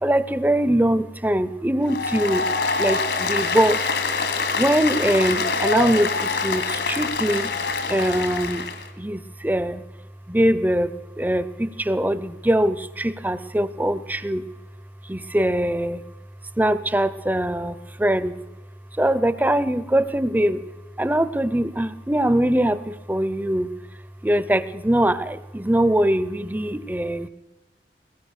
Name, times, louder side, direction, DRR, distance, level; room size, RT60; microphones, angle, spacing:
voice 1, 0.0-2.4 2.8-3.8 4.6-7.5 7.9-8.6 9.0-9.8 10.3-10.9 11.2-14.5 15.1-16.0 16.6-18.3 19.0-20.6 21.0-23.7 24.2-27.3, right 1 dB, 10° right, 16 dB, 0.6 m, -22 dB
Applause, 1.8-8.9, left 4 dB, 75° left, 2.6 m, -25 dB
22.0 x 20.5 x 6.5 m, 1.1 s
head